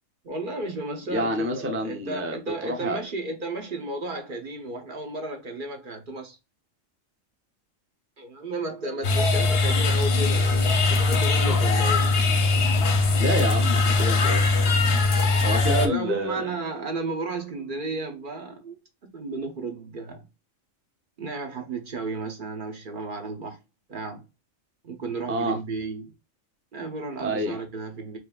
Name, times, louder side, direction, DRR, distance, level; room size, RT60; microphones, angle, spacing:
voice 1, 0.2-6.4 8.2-12.1 15.8-20.2 21.2-23.6 23.9-24.2 24.8-26.1 26.7-28.2, right 2 dB, 45° right, 0.8 m, -33 dB
voice 2, 1.1-2.4 2.6-3.0 13.2-14.5 15.4-16.5 25.3-25.6 27.2-27.6, equal, 20° right, 0.3 m, -28 dB
sound 1, 9.0-15.9, left 3 dB, 55° left, 0.8 m, -21 dB
4.9 x 3.1 x 2.3 m
omnidirectional pair, 1.4 m